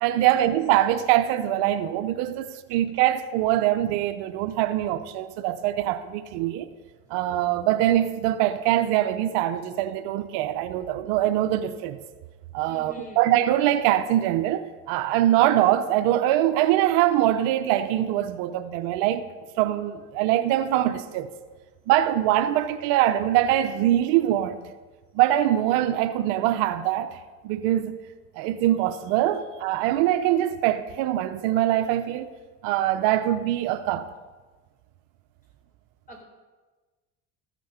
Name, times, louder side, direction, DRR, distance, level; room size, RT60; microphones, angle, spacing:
voice 1, 0.0-6.7 7.1-12.0 12.5-19.3 19.6-21.3 21.9-24.6 25.1-28.0 28.4-32.3 32.6-34.1, right 13 dB, 80° right, 0.7 m, -23 dB
voice 2, 12.7-13.3 36.1-36.2, equal, 20° left, 4.2 m, -44 dB
14.5 x 6.2 x 5.7 m
supercardioid pair, 95°, 37 cm